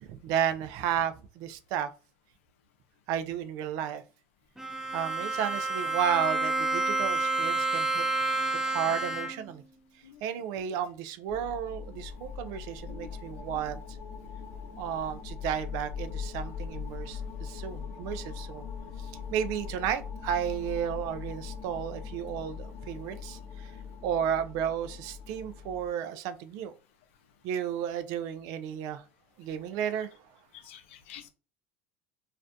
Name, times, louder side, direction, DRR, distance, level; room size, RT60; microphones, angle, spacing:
voice 1, 0.0-1.9 3.1-4.0 4.9-8.4 8.6-9.6 10.2-13.8 14.8-18.7 19.0-23.7 24.0-26.7 27.4-29.0 29.4-30.2, right 9 dB, 65° right, 0.4 m, -33 dB
Bowed string instrument, 4.6-9.6, right 3 dB, 5° right, 0.5 m, -29 dB
sound 1, 11.3-25.9, left 6 dB, 50° left, 0.8 m, -41 dB
voice 2, 30.7-31.3, left 10 dB, 75° left, 0.4 m, -48 dB
2.4 x 2.1 x 2.6 m
hypercardioid pair, 80°, 7 cm